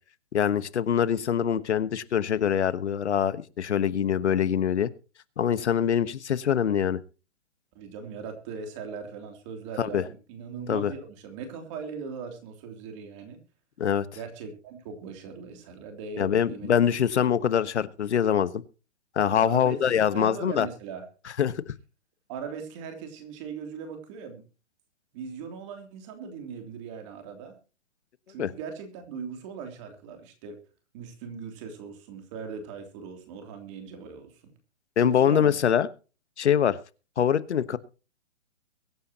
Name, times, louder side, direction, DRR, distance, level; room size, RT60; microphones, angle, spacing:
voice 1, 0.3-4.9 5.4-7.0 9.8-10.0 10.7-10.9 13.8-14.1 16.2-18.6 19.1-20.7 21.4-21.5 28.4-28.5 35.0-35.9 36.4-36.8 37.2-37.8, left 8 dB, 65° left, 16 dB, 1.3 m, -24 dB
voice 2, 7.7-13.4 14.1-16.7 17.2-17.3 19.3-21.0 22.3-24.4 25.1-27.6 28.3-30.6 30.9-34.5 35.0-35.5, right 5 dB, 25° right, 6 dB, 3.0 m, -39 dB
23.0 x 9.6 x 2.9 m, 0.34 s
hypercardioid pair, 165°, 36 cm